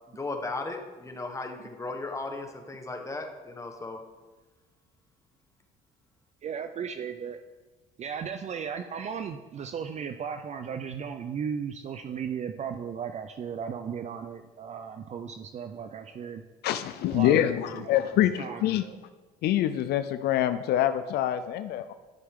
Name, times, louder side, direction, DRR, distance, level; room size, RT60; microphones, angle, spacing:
voice 1, 0.1-4.0, left 3 dB, 20° left, 4 dB, 1.2 m, -36 dB
voice 2, 6.4-7.4 8.0-16.4 17.0-17.9 18.4-19.0, right 7 dB, 40° right, 8 dB, 0.5 m, -36 dB
voice 3, 16.6-18.8 19.4-21.9, left 12 dB, 75° left, 11 dB, 0.5 m, -25 dB
12.5 x 6.7 x 3.7 m, 1.3 s
cardioid pair, 110°, 17 cm